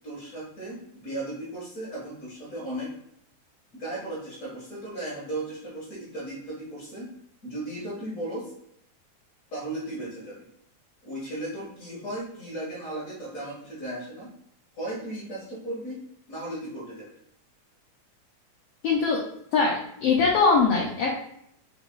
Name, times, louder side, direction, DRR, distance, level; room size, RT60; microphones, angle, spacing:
voice 1, 0.0-2.9 3.7-7.1 7.4-8.5 9.5-10.5 11.0-14.3 14.7-16.0 16.3-17.1, right 1 dB, 45° left, -7 dB, 1.1 m, -36 dB
voice 2, 18.8-19.2 19.5-21.1, left 4 dB, 75° left, -3 dB, 1.5 m, -22 dB
4.8 x 2.9 x 3.7 m, 0.74 s
omnidirectional pair, 3.4 m